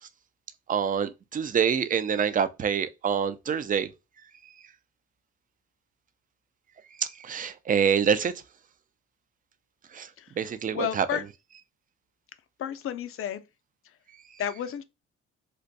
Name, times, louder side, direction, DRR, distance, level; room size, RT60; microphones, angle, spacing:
voice 1, 0.7-3.9 7.0-8.3 9.9-10.1 10.4-11.3, right 7 dB, 30° right, 0.4 m, -26 dB
voice 2, 10.7-11.2 12.6-13.4 14.4-14.8, left 10 dB, 45° left, 0.4 m, -31 dB
2.5 x 2.2 x 3.9 m
cardioid pair, 90°, 30 cm